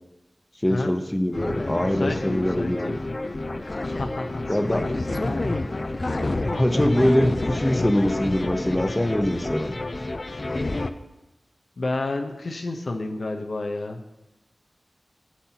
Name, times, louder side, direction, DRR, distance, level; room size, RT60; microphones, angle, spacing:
voice 1, 0.6-2.9 4.5-4.8 6.4-9.8, equal, 15° left, 6 dB, 1.0 m, -23 dB
echo north mufo, 1.3-10.9, left 2 dB, 50° left, 0.6 m, -29 dB
voice 2, 1.8-3.0 3.8-5.0 11.8-14.0, left 2 dB, 75° left, 3 dB, 0.9 m, -30 dB
16.0 x 7.4 x 2.9 m, 0.97 s
cardioid pair, 45°, 0 cm